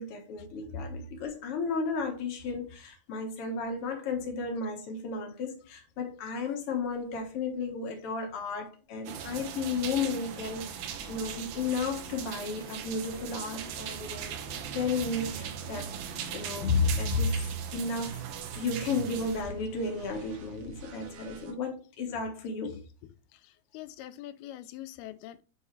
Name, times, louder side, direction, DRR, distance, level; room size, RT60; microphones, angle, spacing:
voice 1, 0.0-14.4 14.7-15.9 16.3-17.5 17.7-18.2 18.5-22.8, left 4 dB, 70° left, 1.3 m, -33 dB
sound 1, 9.1-19.4, right 8 dB, 90° right, 1.7 m, -39 dB
sound 2, 14.9-21.5, right 6 dB, 70° right, 2.3 m, -45 dB
voice 2, 23.3-25.4, left 13 dB, 85° left, 2.4 m, -44 dB
7.3 x 4.4 x 3.2 m
omnidirectional pair, 4.4 m